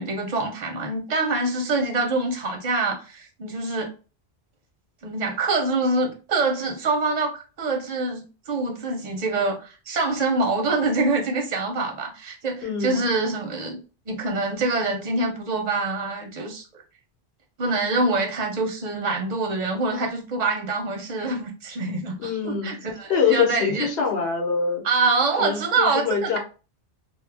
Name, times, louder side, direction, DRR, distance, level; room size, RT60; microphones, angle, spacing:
voice 1, 0.0-3.9 5.0-13.8 14.1-16.6 17.6-23.9 24.8-26.4, right 3 dB, 45° right, 0.6 m, -25 dB
voice 2, 12.6-13.0 22.2-22.7 23.1-24.8 25.4-26.4, left 6 dB, 70° left, 1.0 m, -24 dB
2.3 x 2.0 x 3.2 m
omnidirectional pair, 1.1 m